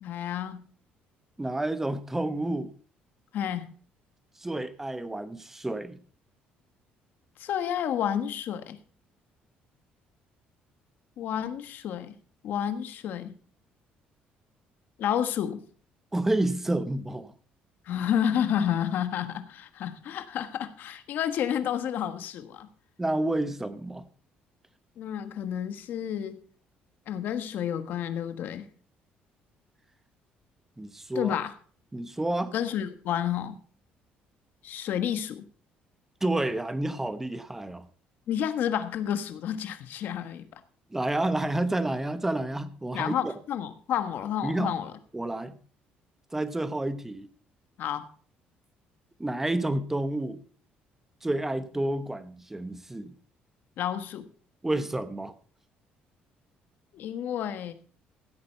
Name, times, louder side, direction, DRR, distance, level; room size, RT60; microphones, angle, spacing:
voice 1, 0.0-0.6 3.3-3.7 7.4-8.8 11.2-12.1 12.4-13.3 15.0-15.6 17.9-22.7 25.0-26.4 27.1-28.7 31.1-31.5 32.5-33.5 34.6-35.4 38.3-40.5 42.9-44.9 47.8-48.1 53.8-54.3 56.9-57.7, left 9 dB, 65° left, 10 dB, 1.3 m, -30 dB
voice 2, 1.4-2.7 4.4-6.0 16.1-17.3 23.0-24.0 30.8-31.3 31.9-32.5 36.2-37.9 40.9-43.3 44.4-44.8 45.1-45.6 46.3-47.3 49.2-50.4 51.2-53.1 54.6-55.3, right 1 dB, 10° right, 12 dB, 0.9 m, -29 dB
15.5 x 8.6 x 4.4 m, 0.43 s
cardioid pair, 125°, 4 cm